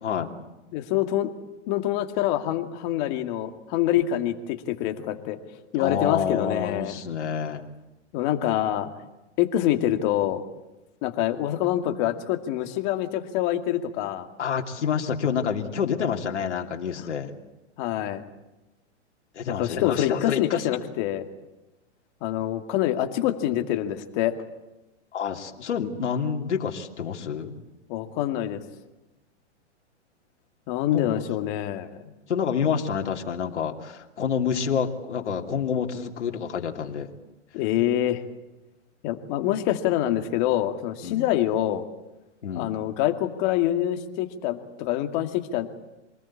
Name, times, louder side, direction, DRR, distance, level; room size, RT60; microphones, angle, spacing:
voice 1, 0.7-1.3 1.7-5.4 5.7-6.9 8.1-8.9 9.4-10.4 11.0-14.3 17.8-18.2 19.5-21.3 22.2-24.3 27.9-28.6 30.7-31.9 37.5-38.2 39.0-41.8 42.6-45.7, left 12 dB, 40° left, 7 dB, 2.3 m, -26 dB
voice 2, 5.8-7.6 14.4-17.3 19.3-20.8 25.1-27.5 30.9-31.5 32.3-37.1 41.0-41.3 42.4-42.7, left 7 dB, 75° left, 3 dB, 3.0 m, -28 dB
26.5 x 20.0 x 8.7 m, 1.0 s
hypercardioid pair, 130°, 35 cm